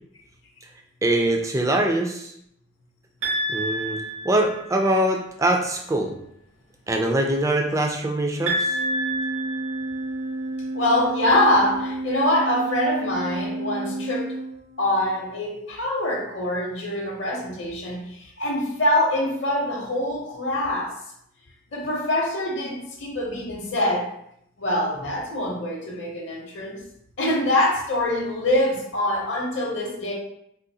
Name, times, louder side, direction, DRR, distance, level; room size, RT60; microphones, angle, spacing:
voice 1, 1.0-2.3 3.5-6.2 6.9-8.8, right 1 dB, 15° right, 2 dB, 0.3 m, -23 dB
sound 1, 3.2-4.9 8.5-10.5, right 1 dB, 80° right, 1.1 m, -28 dB
Organ, 8.6-15.1, right 1 dB, 55° right, 0.6 m, -31 dB
voice 2, 10.7-14.3 14.8-20.9 21.7-24.1 24.6-26.8 27.2-30.1, left 1 dB, 60° left, -1 dB, 0.7 m, -24 dB
3.7 x 2.4 x 2.6 m, 0.74 s
head